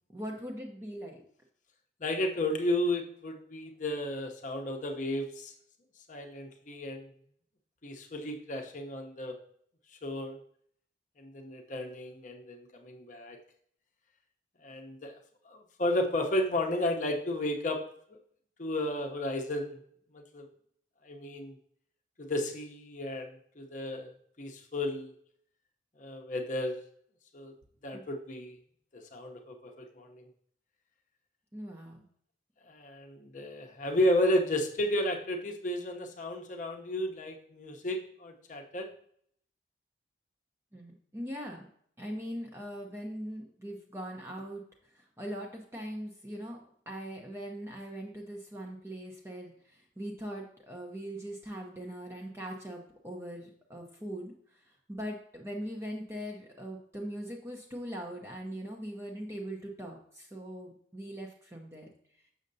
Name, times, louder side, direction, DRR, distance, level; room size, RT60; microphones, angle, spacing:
voice 1, 0.1-1.2 27.9-28.0 31.5-32.0 40.7-41.7 42.0-44.6 44.9-46.6 46.9-61.9, equal, 15° right, 0 dB, 0.6 m, -41 dB
voice 2, 2.0-5.5 6.1-7.1 7.8-9.4 10.0-10.4 11.2-13.4 14.6-15.2 15.4-17.8 18.1-18.2 18.6-19.8 20.1-20.4 21.0-21.6 22.2-24.1 24.4-25.1 26.0-26.8 27.3-27.5 27.8-28.6 28.9-30.3 32.7-38.9, left 1 dB, 40° left, 3 dB, 0.7 m, -33 dB
6.4 x 6.3 x 2.6 m, 0.65 s
head